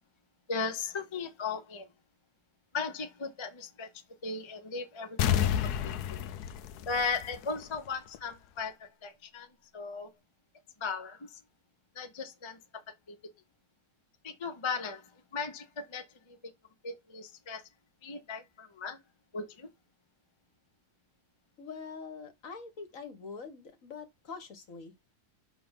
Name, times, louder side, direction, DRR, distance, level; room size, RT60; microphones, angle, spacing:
voice 1, 0.5-1.9 2.7-3.9 4.2-6.2 6.9-9.5 9.7-10.1 10.8-11.4 11.9-12.8 13.1-13.2 14.2-16.5 16.8-17.6 18.0-19.0 19.3-19.7, left 4 dB, 25° left, 0.6 m, -37 dB
sound 1, 5.2-7.8 8.1-8.2, left 10 dB, 75° left, 1.1 m, -30 dB
voice 2, 21.6-24.9, left 5 dB, 55° left, 1.6 m, -44 dB
5.9 x 3.4 x 5.6 m
omnidirectional pair, 1.8 m